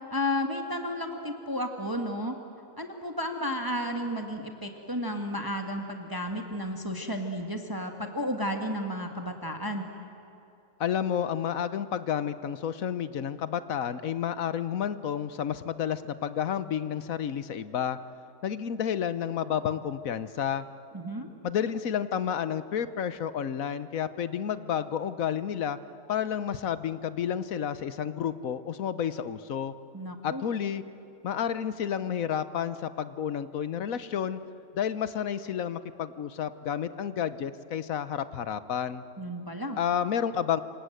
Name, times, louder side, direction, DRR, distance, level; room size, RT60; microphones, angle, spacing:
voice 1, 0.1-2.3 2.8-9.9 20.9-21.3 29.9-30.4 39.2-39.8, equal, 15° right, 4 dB, 1.5 m, -32 dB
voice 2, 10.8-18.0 18.4-20.7 21.4-25.8 26.1-29.7 30.2-30.8 31.2-34.4 34.7-39.0 39.8-40.6, left 8 dB, 65° left, 13 dB, 1.2 m, -30 dB
27.0 x 26.0 x 7.9 m, 2.7 s
omnidirectional pair, 1.6 m